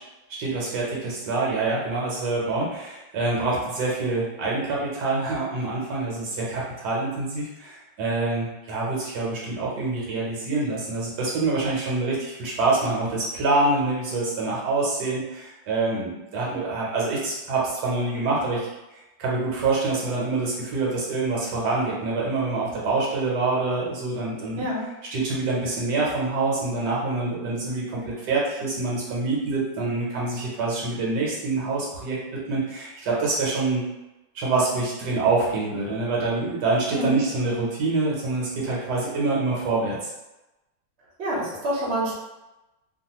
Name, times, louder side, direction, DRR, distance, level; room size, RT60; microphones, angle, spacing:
voice 1, 0.4-18.6 18.9-24.6 25.1-33.8 34.3-40.0, right 3 dB, 75° right, -4 dB, 1.3 m, -26 dB
voice 2, 24.6-24.9 36.9-37.2 41.2-42.1, right 1 dB, 45° right, -6 dB, 0.9 m, -27 dB
2.9 x 2.3 x 2.8 m, 1.0 s
omnidirectional pair, 1.9 m